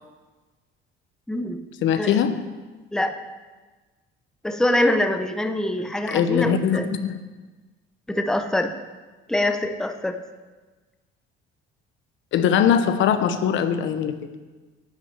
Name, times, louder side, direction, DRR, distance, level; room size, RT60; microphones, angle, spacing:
voice 1, 1.3-1.6 2.0-2.2 2.9-3.2 4.4-6.9 8.1-8.7 9.3-10.2, left 1 dB, 5° left, 7 dB, 0.7 m, -24 dB
voice 2, 1.8-2.3 6.1-7.2 12.3-14.1, left 8 dB, 65° left, 10 dB, 0.9 m, -21 dB
10.5 x 5.8 x 8.4 m, 1.3 s
cardioid pair, 100°, 21 cm